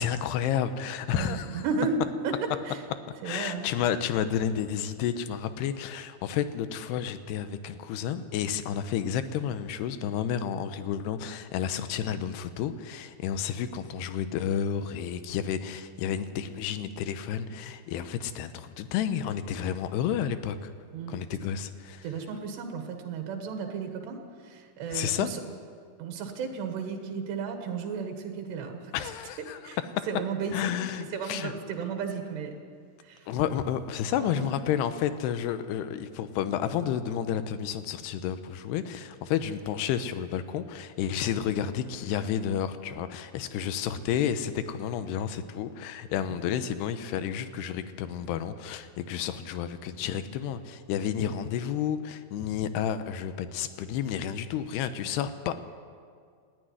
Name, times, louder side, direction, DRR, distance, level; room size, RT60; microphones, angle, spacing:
voice 1, 0.0-1.6 3.2-20.7 21.1-22.0 24.9-25.3 28.9-29.6 30.0-30.1 30.5-31.5 33.3-55.5, left 9 dB, 90° left, 11 dB, 3.0 m, -31 dB
voice 2, 1.1-2.0 2.2-2.4 2.6-2.8 3.2-3.7 20.9-21.2 22.0-25.4 26.0-28.9 29.4-29.8 30.1-32.6 33.0-33.3 34.0-34.6 46.3-46.4 55.1-55.2, right 5 dB, 90° right, 4 dB, 3.7 m, -34 dB
19.0 x 14.0 x 9.7 m, 2.1 s
omnidirectional pair, 4.7 m